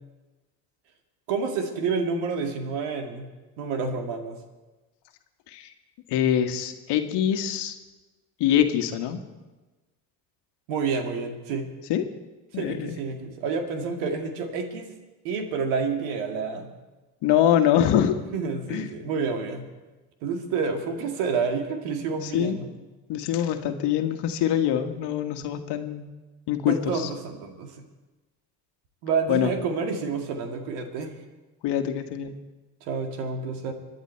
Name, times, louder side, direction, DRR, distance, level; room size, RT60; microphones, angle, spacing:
voice 1, 1.3-3.3 3.6-4.4 10.7-11.7 12.5-14.9 15.2-16.7 17.8-17.9 18.3-19.7 20.2-22.7 26.7-27.8 29.0-31.2 32.8-33.7, right 5 dB, 75° right, 6 dB, 2.2 m, -29 dB
voice 2, 6.1-7.8 8.4-9.2 11.9-12.0 12.5-13.0 17.2-18.2 18.7-18.9 22.2-22.6 23.1-26.1 26.5-27.1 29.3-29.5 31.6-32.4, left 10 dB, 60° left, 7 dB, 1.6 m, -24 dB
25.0 x 10.5 x 4.5 m, 1.2 s
hypercardioid pair, 70°, 46 cm